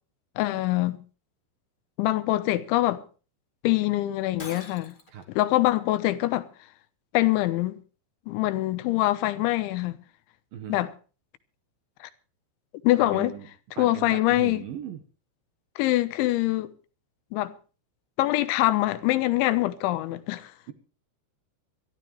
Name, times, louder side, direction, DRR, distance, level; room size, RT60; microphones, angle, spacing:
voice 1, 0.4-1.0 2.0-3.0 3.6-4.9 5.4-6.5 7.1-7.8 8.3-10.0 10.7-10.9 12.0-12.1 12.8-13.3 13.8-14.6 15.8-16.7 17.3-17.5 18.2-20.5, left 16 dB, 80° left, 3.2 m, -24 dB
Shatter, 4.4-5.2, left 3 dB, 60° left, 0.5 m, -43 dB
voice 2, 12.9-13.5 13.8-15.0, right 9 dB, 65° right, 2.4 m, -38 dB
22.5 x 13.5 x 3.2 m
omnidirectional pair, 5.5 m